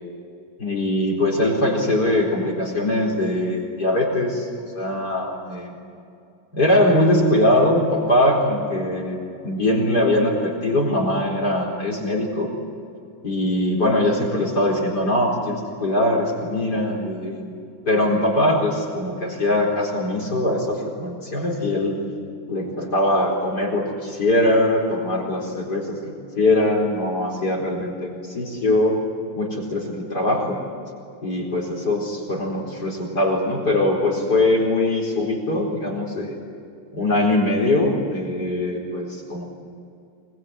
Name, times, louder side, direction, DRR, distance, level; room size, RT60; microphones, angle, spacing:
voice 1, 0.6-4.5 4.7-5.8 6.5-12.5 13.2-17.5 17.8-22.0 22.5-26.0 26.4-29.0 29.3-30.6 31.2-36.4 36.9-39.4, left 1 dB, 55° left, -2 dB, 4.9 m, -21 dB
25.0 x 22.0 x 9.5 m, 2.4 s
omnidirectional pair, 2.2 m